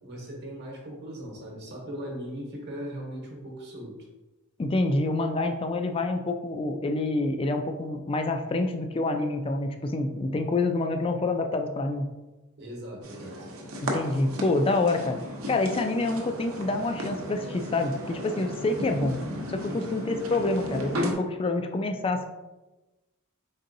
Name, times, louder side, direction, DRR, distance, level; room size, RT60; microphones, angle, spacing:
voice 1, 0.0-3.9 12.6-13.5, equal, 50° right, -1 dB, 1.0 m, -39 dB
voice 2, 4.6-12.1 13.8-15.2 15.5-19.2 19.5-22.3, left 2 dB, 25° left, 6 dB, 0.3 m, -27 dB
sound 1, 13.0-21.1, equal, 75° right, 0.7 m, -35 dB
4.0 x 3.6 x 2.6 m, 1.1 s
head